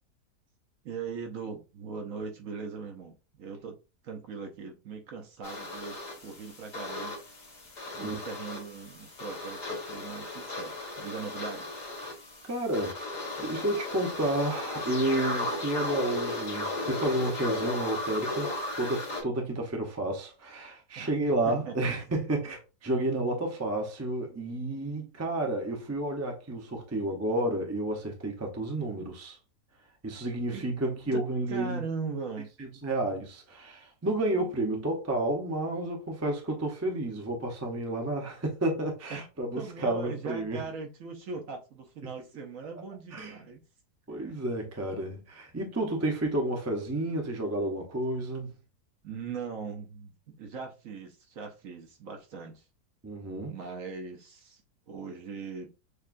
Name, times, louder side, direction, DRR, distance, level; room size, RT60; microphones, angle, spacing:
voice 1, 0.8-3.7 4.0-7.2 8.0-11.7 21.0-21.1 21.4-21.8 30.5-30.6 31.1-31.2 31.5-32.5 39.1-39.2 39.5-43.6 44.1-44.3 49.0-52.6 53.5-54.6 54.9-55.7, right 5 dB, 60° right, 1.1 m, -40 dB
sound 1, 5.4-19.2, left 2 dB, 50° left, 2.1 m, -36 dB
voice 2, 12.5-29.4 30.0-31.8 32.6-40.6 43.1-43.4 44.1-48.6 53.0-53.6, right 1 dB, 20° right, 0.5 m, -31 dB
6.4 x 2.4 x 2.5 m
omnidirectional pair, 1.7 m